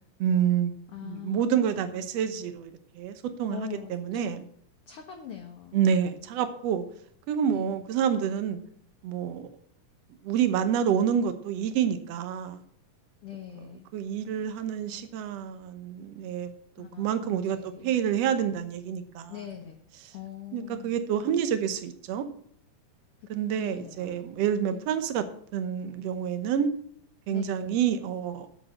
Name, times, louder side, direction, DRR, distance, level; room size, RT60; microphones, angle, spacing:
voice 1, 0.2-0.7 1.0-4.4 5.7-6.8 7.3-8.6 9.0-9.5 10.2-12.6 13.9-16.5 17.0-19.3 20.5-22.3 23.3-25.3 25.5-26.7 27.3-28.5, right 8 dB, 70° right, 9 dB, 1.7 m, -28 dB
voice 2, 0.9-2.1 3.5-4.3 4.9-5.8 7.5-7.7 13.2-13.9 16.8-18.0 19.3-19.8 20.1-20.9 23.6-24.2 24.7-24.9 27.3-27.7, left 10 dB, 65° left, 2 dB, 1.5 m, -42 dB
8.2 x 6.4 x 7.6 m, 0.62 s
omnidirectional pair, 3.9 m